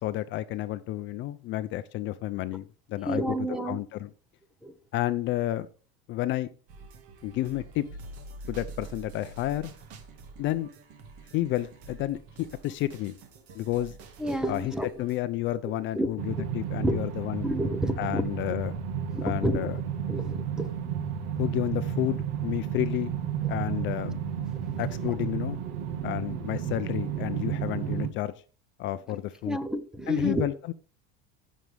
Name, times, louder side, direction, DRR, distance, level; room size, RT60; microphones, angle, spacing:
voice 1, 0.0-3.2 3.7-4.1 4.9-5.7 6.1-6.5 7.2-7.9 8.5-9.7 10.4-10.7 11.3-13.2 13.5-13.9 14.5-17.5 18.0-18.7 19.2-19.8 21.4-23.1 23.5-24.2 24.8-25.6 26.0-28.3 28.8-29.6 30.1-30.7, left 15 dB, 40° left, 13 dB, 0.5 m, -31 dB
voice 2, 3.1-3.8 4.6-4.7 14.2-14.9 15.9-16.1 16.8-17.0 17.4-18.2 19.1-19.6 20.1-20.7 24.7-24.8 29.1-29.2 29.4-30.5, equal, ahead, 11 dB, 0.7 m, -29 dB
sound 1, 6.7-15.3, right 3 dB, 50° right, 1.9 m, -46 dB
sound 2, 16.2-28.1, right 8 dB, 80° right, 1.5 m, -32 dB
14.5 x 6.2 x 3.4 m, 0.39 s
cardioid pair, 145°, 30 cm